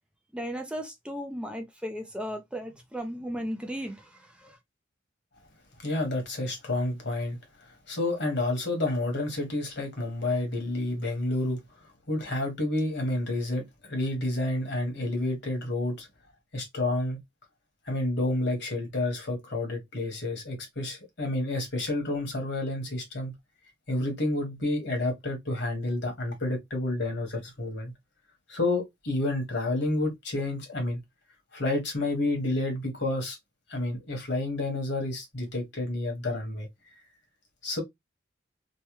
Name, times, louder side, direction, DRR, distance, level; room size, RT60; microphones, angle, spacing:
voice 1, 0.3-4.6, equal, 5° right, 0.4 m, -36 dB
voice 2, 5.8-7.4 7.9-11.6 12.1-16.1 16.5-17.2 17.9-23.3 23.9-27.9 28.5-31.0 31.5-33.4 33.7-36.7 37.6-37.8, left 2 dB, 65° left, 1.4 m, -29 dB
3.2 x 2.1 x 3.0 m
head